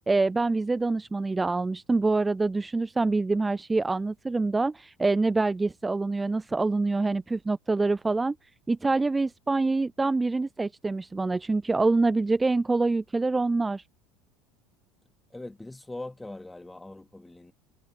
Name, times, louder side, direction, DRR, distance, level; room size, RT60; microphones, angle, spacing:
voice 1, 0.0-8.4 8.7-13.8, right 3 dB, 15° right, 0.5 m, -25 dB
voice 2, 15.3-17.5, left 2 dB, 10° left, 3.0 m, -41 dB
hypercardioid pair, 75°, 0 cm